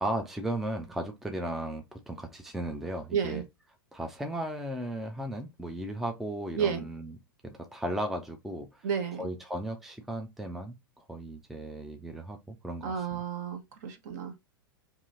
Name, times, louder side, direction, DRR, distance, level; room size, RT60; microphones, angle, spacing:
voice 1, 0.0-3.4 3.9-7.2 7.4-8.9 9.2-13.2, right 1 dB, ahead, 0.4 m, -36 dB
voice 2, 3.1-3.4 6.6-6.9 8.8-9.3 12.8-14.4, right 7 dB, 50° right, 0.9 m, -31 dB
2.8 x 2.6 x 3.6 m
figure-of-eight pair, 95°, 12 cm